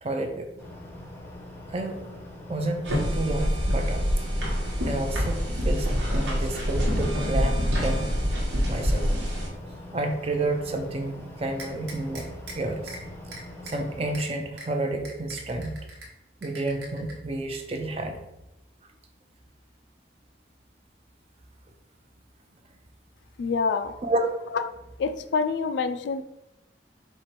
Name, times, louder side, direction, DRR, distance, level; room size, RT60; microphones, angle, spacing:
voice 1, 0.0-0.5 1.7-2.0 2.5-4.1 4.8-8.1 8.7-9.0 9.9-12.3 12.5-13.0 13.6-15.8 16.4-18.2 24.0-24.3, right 2 dB, 30° right, 4 dB, 0.5 m, -30 dB
sound 1, 0.6-14.2, left 1 dB, 10° left, 0.6 m, -42 dB
sound 2, 2.8-9.5, equal, 90° right, 1.3 m, -26 dB
sound 3, 11.6-12.5 12.9-13.0 13.3-13.8 14.1-14.2 14.6-14.7 15.0-16.1 16.4-17.1, right 2 dB, 70° right, 1.1 m, -41 dB
voice 2, 23.4-23.9 24.5-24.6 25.0-26.2, left 5 dB, 80° left, 10 dB, 0.3 m, -26 dB
4.4 x 2.5 x 4.4 m, 0.91 s
head